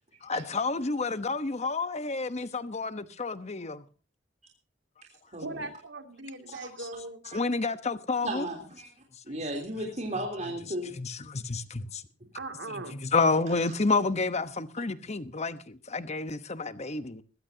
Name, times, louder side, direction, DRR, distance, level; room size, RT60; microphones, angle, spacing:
voice 1, 0.2-3.8 7.3-8.5 10.9-12.0 12.7-17.2, left 3 dB, 35° left, 1.0 m, -30 dB
voice 2, 5.4-7.2 12.3-13.0, right 2 dB, 70° right, 2.6 m, -39 dB
voice 3, 8.2-8.9 9.3-10.9, right 1 dB, 40° right, 3.4 m, -34 dB
21.0 x 15.5 x 2.8 m
head